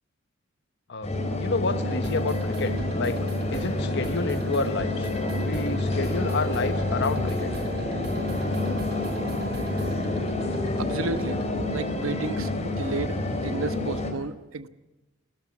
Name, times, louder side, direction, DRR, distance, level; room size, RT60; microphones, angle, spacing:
sound 1, 1.0-14.1, left 2 dB, 35° left, 4.1 m, -28 dB
voice 1, 1.4-3.3 3.5-5.1 5.4-7.5, left 3 dB, 55° left, 11 dB, 1.0 m, -29 dB
sound 2, 1.8-12.2, right 3 dB, 50° right, 1.3 m, -40 dB
voice 2, 10.8-11.4 11.7-14.7, right 3 dB, 80° right, 11 dB, 1.1 m, -32 dB
29.0 x 14.0 x 7.3 m, 1.1 s
head